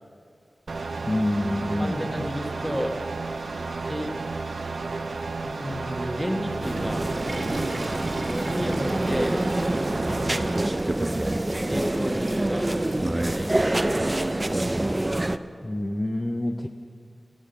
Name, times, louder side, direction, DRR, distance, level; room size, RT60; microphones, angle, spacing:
sound 1, 0.7-10.7, right 3 dB, 80° right, 0.7 m, -32 dB
voice 1, 1.1-2.1 15.6-16.7, left 1 dB, 20° left, 4 dB, 0.6 m, -27 dB
voice 2, 1.8-3.0 3.8-4.1 4.8-4.9 5.4-7.2 8.2-9.4 9.7-10.5 11.6-13.5, equal, 5° left, 3 dB, 1.4 m, -32 dB
Water / Toilet flush, 6.4-14.1, right 1 dB, 50° right, 2.2 m, -39 dB
sound 2, 6.6-15.4, right 1 dB, 25° right, 0.5 m, -26 dB
13.0 x 13.0 x 6.9 m, 2.3 s
wide cardioid pair, 75°, 0 cm